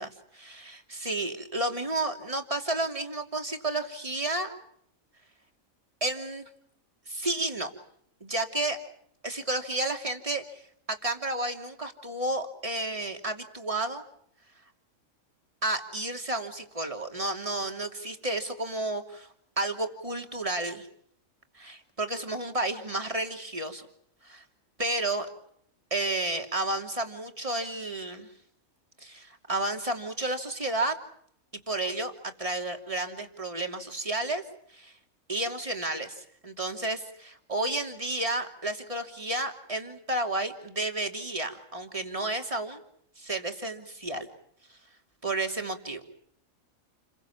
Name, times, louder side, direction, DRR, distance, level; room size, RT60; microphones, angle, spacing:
voice 1, 0.0-4.6 6.0-6.5 7.1-7.7 8.2-8.8 9.2-10.6 10.9-14.0 15.6-19.3 19.6-20.9 21.5-23.8 24.2-24.4 24.8-25.3 25.9-28.3 29.0-31.0 31.7-34.4 34.7-34.9 35.3-42.8 43.2-44.3 45.2-46.0, right 2 dB, 25° right, 4 dB, 2.9 m, -31 dB
29.5 x 22.5 x 7.3 m, 0.69 s
omnidirectional pair, 1.5 m